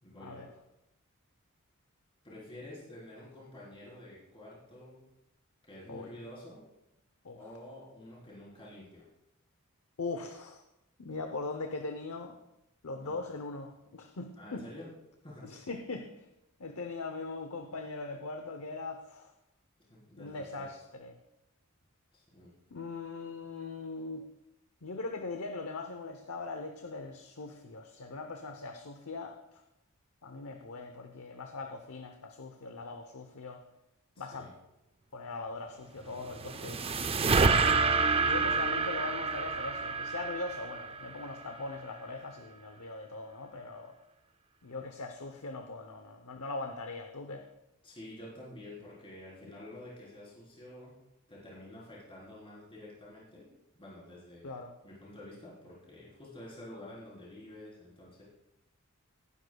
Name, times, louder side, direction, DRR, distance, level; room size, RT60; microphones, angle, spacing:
voice 1, 0.0-0.5 2.2-5.0 5.7-6.6 7.4-9.0 13.0-13.1 14.4-14.9 15.2-15.5 19.9-20.7 22.1-22.5 34.1-34.5 47.8-51.0 51.3-53.5 53.7-54.6 54.8-58.2, left 1 dB, 25° left, -7 dB, 4.0 m, -49 dB
voice 2, 10.0-10.6 11.0-12.4 12.8-14.6 15.4-16.3 16.6-19.3 20.2-21.2 22.7-24.2 24.8-29.4 30.2-33.6 34.2-34.5 35.1-36.9 38.2-44.0 44.6-47.4 49.5-49.6 54.4-54.7, left 3 dB, 75° left, 5 dB, 0.8 m, -40 dB
sound 1, 36.1-41.5, right 4 dB, 25° right, 0.5 m, -28 dB
18.0 x 9.9 x 2.3 m, 0.89 s
head